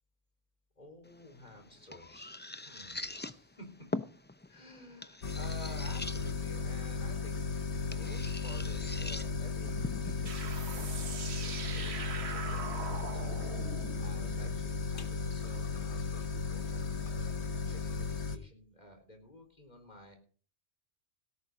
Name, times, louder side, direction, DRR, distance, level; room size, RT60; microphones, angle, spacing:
voice 1, 0.8-3.9 4.5-13.2 14.0-20.2, left 1 dB, 35° left, 4 dB, 4.3 m, -53 dB
sound 1, 1.0-12.0, left 2 dB, 15° left, 0.3 m, -45 dB
sound 2, 5.2-18.4, left 5 dB, 65° left, 1.5 m, -35 dB
sound 3, 10.3-15.5, right 5 dB, 60° right, 1.5 m, -42 dB
17.5 x 11.0 x 3.9 m, 0.40 s
omnidirectional pair, 1.2 m